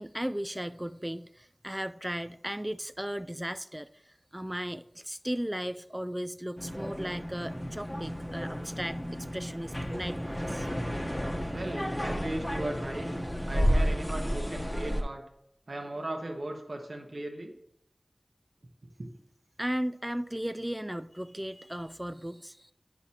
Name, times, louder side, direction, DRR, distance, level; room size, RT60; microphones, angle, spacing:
voice 1, 0.0-10.7 19.6-22.7, equal, 15° right, 0.3 m, -36 dB
sound 1, 6.6-15.0, equal, 15° left, 1.0 m, -32 dB
voice 2, 11.5-13.2 13.5-15.2 15.7-17.5 19.0-19.1, right 1 dB, 70° right, 1.1 m, -37 dB
9.5 x 6.3 x 2.9 m
wide cardioid pair, 40°, 0 cm